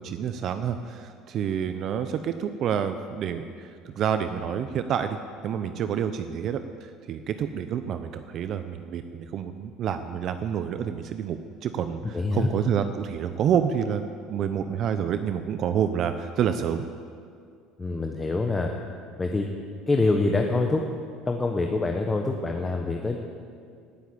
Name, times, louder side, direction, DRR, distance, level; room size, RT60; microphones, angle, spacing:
voice 1, 0.0-5.2 5.4-16.8, right 8 dB, 50° right, 9 dB, 0.7 m, -28 dB
voice 2, 12.1-12.5 17.8-18.7 19.2-19.5 19.9-20.8 21.3-23.2, left 3 dB, 15° left, 2 dB, 1.1 m, -25 dB
17.5 x 7.4 x 8.6 m, 2.2 s
supercardioid pair, 115°, 0 cm